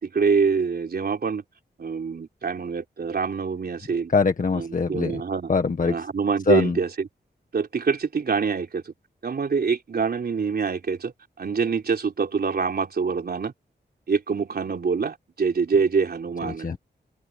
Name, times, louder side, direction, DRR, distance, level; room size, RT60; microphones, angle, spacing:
voice 1, 0.0-1.4 1.8-4.1 4.5-5.5 5.9-7.1 7.5-8.9 9.2-11.1 11.4-13.5 14.1-16.7, right 5 dB, 60° right, 3.9 m, -25 dB
voice 2, 4.1-5.2 5.5-6.0 6.5-6.8 16.4-16.8, left 4 dB, 50° left, 1.7 m, -23 dB
wide cardioid pair, 135°, 18 cm